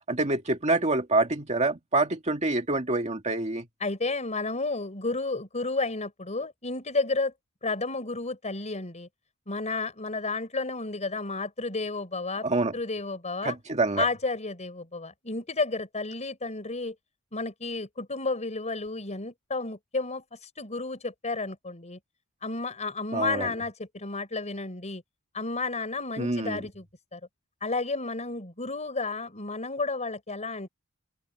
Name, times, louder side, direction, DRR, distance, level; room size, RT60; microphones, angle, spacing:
voice 1, 0.1-3.7 12.4-12.7 13.4-14.0 23.1-23.5 26.2-26.6, right 2 dB, 30° right, 1.9 m, -26 dB
voice 2, 3.8-7.3 7.6-9.1 9.5-12.5 12.7-13.6 14.0-16.9 17.3-22.0 22.4-25.0 25.3-26.9 27.1-27.2 27.6-30.7, left 3 dB, 30° left, 4.6 m, -32 dB
open air
head